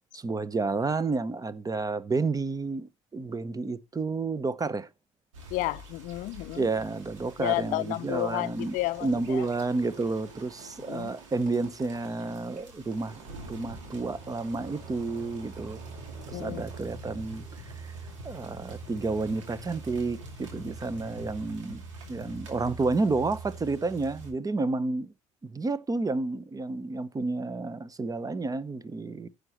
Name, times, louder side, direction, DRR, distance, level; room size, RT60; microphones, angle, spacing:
voice 1, 0.1-4.9 6.5-8.7 9.0-13.2 13.5-15.8 16.3-17.9 18.2-25.1 25.4-29.3, right 3 dB, 25° right, 0.9 m, -30 dB
sound 1, 5.3-24.3, right 3 dB, 80° right, 2.4 m, -45 dB
voice 2, 5.5-6.7 7.4-9.5 10.9-11.1 16.3-16.6, left 18 dB, 55° left, 0.5 m, -31 dB
Squeak, 8.6-17.9, right 4 dB, 60° right, 2.9 m, -51 dB
15.5 x 6.5 x 3.0 m
figure-of-eight pair, 50°, 16 cm